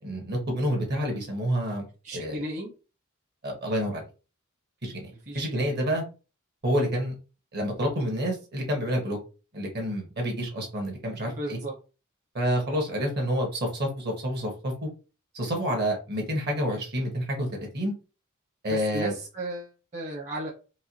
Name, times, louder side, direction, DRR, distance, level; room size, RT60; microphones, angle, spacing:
voice 1, 0.0-1.9 2.1-2.4 3.4-4.0 4.8-6.0 6.6-7.2 7.5-9.2 9.5-11.6 12.3-14.9 15.3-17.9 18.6-19.1, equal, 50° right, 1 dB, 1.4 m, -28 dB
voice 2, 2.0-2.7 5.3-5.7 11.2-11.7 12.4-12.5 18.7-20.5, right 1 dB, 35° right, -5 dB, 1.1 m, -35 dB
4.6 x 2.3 x 2.9 m, 0.33 s
head